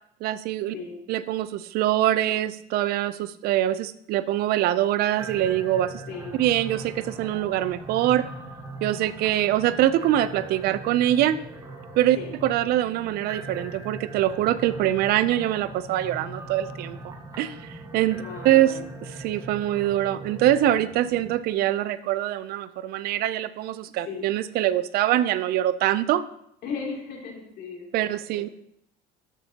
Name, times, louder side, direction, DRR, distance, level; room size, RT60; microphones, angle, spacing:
voice 1, 0.2-0.7 1.1-5.9 6.4-8.2 8.8-11.4 12.0-12.2 12.4-18.2 18.4-18.7 19.0-26.2 27.9-28.5, right 13 dB, 55° right, 15 dB, 0.4 m, -24 dB
sound 1, 5.2-21.4, right 2 dB, 20° right, 1.4 m, -40 dB
voice 2, 18.2-18.8 24.0-24.2 26.6-28.4, left 5 dB, 55° left, 0 dB, 2.8 m, -36 dB
13.0 x 7.2 x 2.8 m, 0.73 s
cardioid pair, 145°, 19 cm